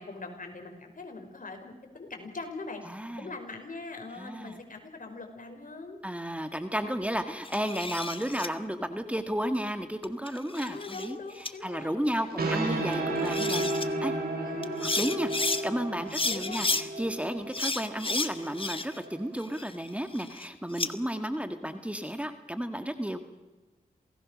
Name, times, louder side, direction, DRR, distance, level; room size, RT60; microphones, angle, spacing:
voice 1, 0.0-2.8 3.2-6.0 10.5-12.4 14.4-14.9 16.3-16.6, left 3 dB, 55° left, 4 dB, 5.4 m, -42 dB
voice 2, 2.9-3.4 4.1-4.6 6.0-13.7 14.0-14.1 14.8-23.2, equal, 10° right, 8 dB, 1.9 m, -33 dB
sound 1, 7.4-8.5 10.0-11.1 11.4-11.5 12.9-13.0 13.2-13.9 14.6-15.6 16.1-16.8 17.5-19.0 19.4-20.9, left 3 dB, 35° left, 1.5 m, -32 dB
sound 2, 12.1-19.3, right 2 dB, 75° right, 6.9 m, -33 dB
27.0 x 18.5 x 6.5 m, 1.2 s
cardioid pair, 55°, 16 cm